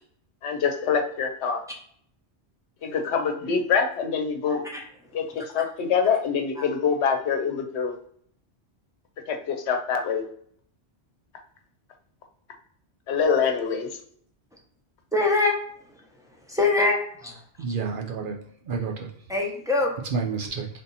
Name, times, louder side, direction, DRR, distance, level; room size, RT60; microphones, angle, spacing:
voice 1, 0.4-1.6 2.8-4.6 5.1-7.9 9.3-10.2 13.1-13.9, left 6 dB, 80° left, 5 dB, 0.9 m, -25 dB
voice 2, 15.1-15.6 16.5-17.4 19.3-20.0, left 3 dB, 5° right, -1 dB, 0.7 m, -23 dB
voice 3, 17.6-19.1 20.1-20.7, right 5 dB, 60° right, 2 dB, 0.7 m, -30 dB
3.5 x 2.7 x 4.0 m, 0.64 s
omnidirectional pair, 1.1 m